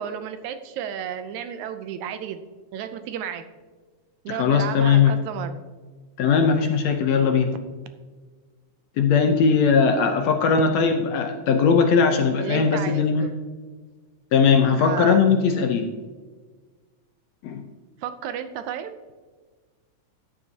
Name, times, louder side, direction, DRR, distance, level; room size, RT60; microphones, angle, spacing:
voice 1, 0.0-2.4 2.7-3.4 4.3-5.6 12.4-13.3 14.8-15.2 18.0-18.9, right 9 dB, 75° right, 9 dB, 1.9 m, -32 dB
voice 2, 4.3-5.1 6.2-7.5 9.0-13.3 14.3-15.9 17.4-17.6, left 6 dB, 70° left, 5 dB, 1.7 m, -19 dB
13.5 x 9.6 x 2.8 m, 1.4 s
omnidirectional pair, 3.6 m